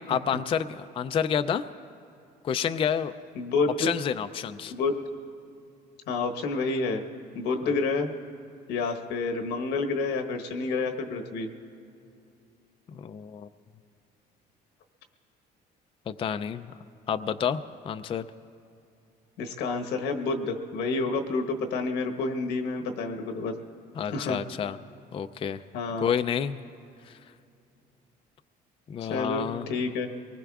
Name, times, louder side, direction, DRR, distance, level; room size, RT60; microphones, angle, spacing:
voice 1, 0.1-1.6 2.4-3.1 3.8-4.7 7.6-7.7 12.9-13.5 16.1-16.7 17.1-18.3 24.0-24.8 25.1-25.6 26.0-26.7 27.1-27.2 28.9-29.7, left 8 dB, 30° left, 9 dB, 0.4 m, -29 dB
voice 2, 3.3-3.9 4.6-4.9 6.1-7.0 7.3-8.1 8.7-11.5 19.4-23.5 24.1-24.4 25.7-26.1 29.0-30.1, left 3 dB, 90° left, 4 dB, 1.2 m, -29 dB
24.0 x 19.5 x 2.4 m, 2.5 s
cardioid pair, 110°, 17 cm